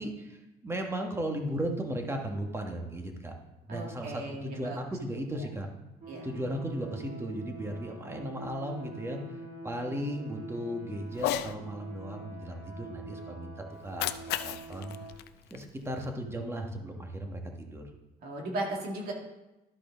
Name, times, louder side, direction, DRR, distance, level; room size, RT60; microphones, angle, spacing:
voice 1, 0.0-3.3 3.7-5.7 6.2-9.2 9.6-15.0 15.5-17.8, right 1 dB, 15° right, 3 dB, 1.3 m, -36 dB
voice 2, 3.7-4.8 6.1-6.2 18.2-19.1, right 2 dB, 65° right, 0 dB, 2.2 m, -36 dB
sound 1, 6.0-15.1, right 3 dB, 50° right, 3.4 m, -46 dB
Cat, 11.1-11.5 13.7-16.1, left 12 dB, 75° left, 0.5 m, -35 dB
12.5 x 4.9 x 3.9 m, 0.99 s
cardioid pair, 110°, 17 cm